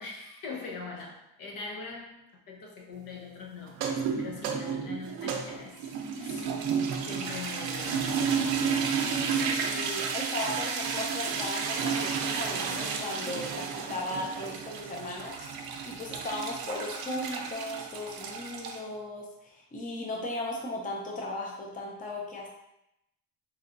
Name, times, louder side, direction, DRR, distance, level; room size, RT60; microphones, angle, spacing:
voice 1, 0.0-5.8 6.2-8.1, left 4 dB, 65° left, 0 dB, 0.9 m, -42 dB
sound 1, 3.7-18.8, right 6 dB, 75° right, 0.6 m, -32 dB
voice 2, 9.4-22.5, left 1 dB, 20° left, -1 dB, 0.6 m, -37 dB
4.6 x 2.8 x 2.6 m, 0.84 s
cardioid pair, 135°, 36 cm